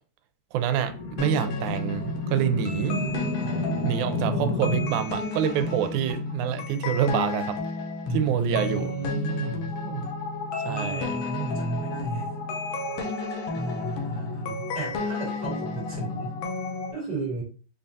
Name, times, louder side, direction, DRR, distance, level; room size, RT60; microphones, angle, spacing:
voice 1, 0.5-3.0 3.8-7.6 8.1-8.9 9.8-10.1 10.6-11.2, right 9 dB, 85° right, 1.9 m, -27 dB
sound 1, 0.8-5.2, left 1 dB, 45° left, 0.9 m, -31 dB
sound 2, 1.2-16.9, left 3 dB, 75° left, 1.7 m, -32 dB
voice 2, 3.4-4.9 8.1-9.7 10.6-12.3 13.5-16.4 16.9-17.4, right 3 dB, 50° right, 1.3 m, -33 dB
5.4 x 2.3 x 2.6 m
omnidirectional pair, 3.5 m